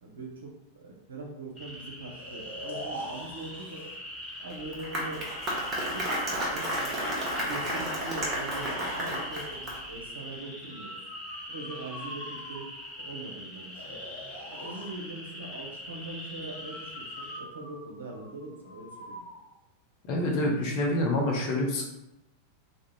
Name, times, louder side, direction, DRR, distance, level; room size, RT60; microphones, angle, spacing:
voice 1, 0.0-3.9 4.4-5.4 5.9-7.0 7.5-11.0 11.5-12.7 13.0-14.0 14.5-19.2, right 2 dB, 70° right, 0 dB, 0.5 m, -42 dB
sound 1, 1.6-17.4, left 1 dB, 20° left, 1.5 m, -43 dB
Breathing, 2.2-4.0 5.3-7.0 7.5-9.3 10.7-12.9 13.7-14.9 16.5-19.4, equal, 80° left, 0.7 m, -44 dB
Applause, 4.5-10.0, equal, 25° right, 0.7 m, -32 dB
voice 2, 20.1-21.9, left 1 dB, 40° left, 0 dB, 0.6 m, -27 dB
2.4 x 2.0 x 3.0 m, 0.91 s
figure-of-eight pair, 90°, 0 cm